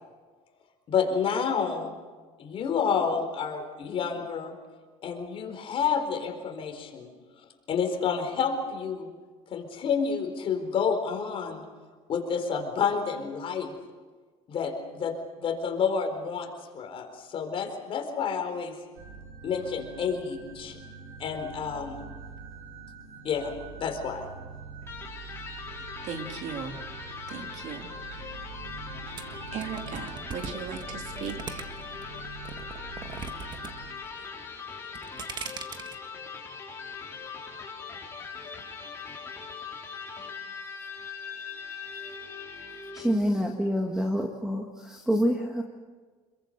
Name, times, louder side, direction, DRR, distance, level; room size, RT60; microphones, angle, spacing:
voice 1, 0.9-1.9 2.4-4.5 5.0-7.1 7.7-9.1 9.5-11.6 12.1-13.8 14.5-18.8 19.4-20.8 21.2-22.0 23.2-24.2, left 6 dB, 40° left, 4 dB, 4.2 m, -29 dB
sound 1, 19.0-34.0, right 4 dB, 90° right, 7.6 m, -44 dB
Electric guitar, 24.8-43.2, left 5 dB, 20° left, 4.1 m, -41 dB
voice 2, 26.0-26.8 27.3-27.9 29.5-31.6, right 6 dB, 55° right, 4 dB, 2.9 m, -37 dB
sound 2, 29.2-32.0 32.4-33.7 34.0-34.5 34.8-36.0, right 5 dB, 30° right, 1.6 m, -39 dB
voice 3, 42.9-45.6, equal, 5° right, 3 dB, 1.7 m, -27 dB
27.5 x 22.0 x 6.7 m, 1.4 s
cardioid pair, 140°, 14 cm